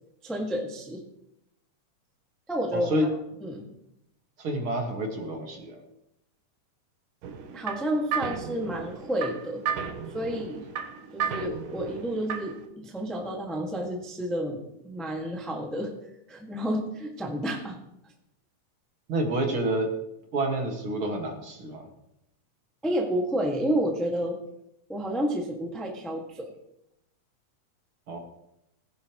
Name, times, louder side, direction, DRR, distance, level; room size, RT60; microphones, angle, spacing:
voice 1, 0.2-1.0 2.5-2.9 3.4-3.7 7.5-9.6 10.1-10.7 11.1-14.6 14.8-15.9 16.3-17.8 22.8-24.4 24.9-26.5, equal, ahead, -1 dB, 0.7 m, -30 dB
voice 2, 2.7-3.1 4.4-5.8 19.1-19.9 20.3-21.9 28.1-28.2, right 1 dB, 45° right, 1 dB, 2.3 m, -28 dB
sound 1, 7.2-12.7, right 7 dB, 80° right, 2.8 m, -34 dB
20.0 x 11.0 x 3.1 m, 0.83 s
omnidirectional pair, 3.8 m